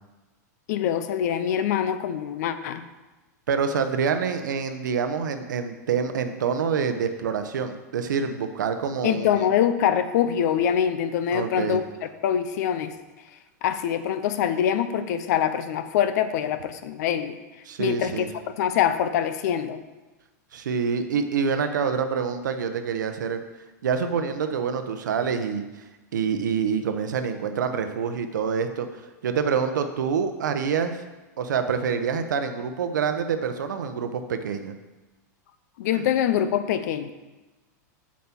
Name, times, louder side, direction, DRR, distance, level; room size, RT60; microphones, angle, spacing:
voice 1, 0.7-2.8 9.0-13.0 13.6-17.4 17.8-19.8 35.8-37.1, left 9 dB, 65° left, 11 dB, 0.7 m, -24 dB
voice 2, 3.5-9.5 11.3-11.8 17.7-18.3 20.5-23.4 23.8-25.7 26.1-31.0 31.4-34.7 35.9-36.0, right 6 dB, 90° right, 8 dB, 0.9 m, -26 dB
7.5 x 7.2 x 4.4 m, 1.1 s
hypercardioid pair, 125°, 10 cm